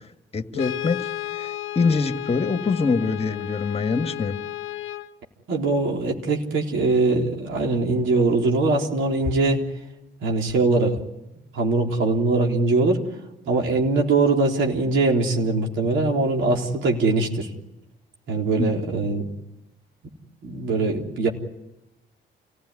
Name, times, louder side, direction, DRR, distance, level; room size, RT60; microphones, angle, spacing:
voice 1, 0.3-4.4 18.6-18.7, left 4 dB, 30° left, 7 dB, 1.7 m, -24 dB
Brass instrument, 0.5-5.1, left 15 dB, 80° left, 0.8 m, -33 dB
voice 2, 5.5-9.6 10.2-11.0 11.5-13.0 13.5-17.5 18.3-19.3 20.4-21.3, right 3 dB, 75° right, 0 dB, 3.9 m, -22 dB
28.5 x 16.0 x 9.9 m, 0.94 s
cardioid pair, 90°, 20 cm